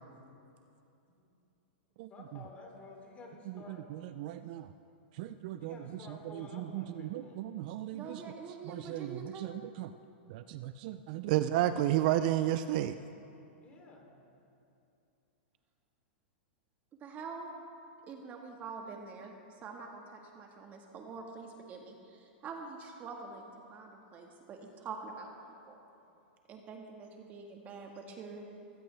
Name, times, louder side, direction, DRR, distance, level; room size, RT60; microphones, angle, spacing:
voice 1, 2.1-3.9 5.2-7.4 13.6-14.1 25.9-26.0, left 3 dB, 25° left, 0 dB, 3.2 m, -52 dB
voice 2, 3.5-4.7 5.1-5.8 6.1-8.3 8.6-9.9 10.3-13.0, right 13 dB, 50° right, 11 dB, 0.5 m, -33 dB
voice 3, 7.9-9.5 17.0-17.5 18.1-19.3 19.6-25.3 25.7-25.8 26.5-28.5, right 4 dB, 25° right, 2 dB, 1.6 m, -45 dB
20.0 x 15.0 x 3.4 m, 2.7 s
hypercardioid pair, 140°, 6 cm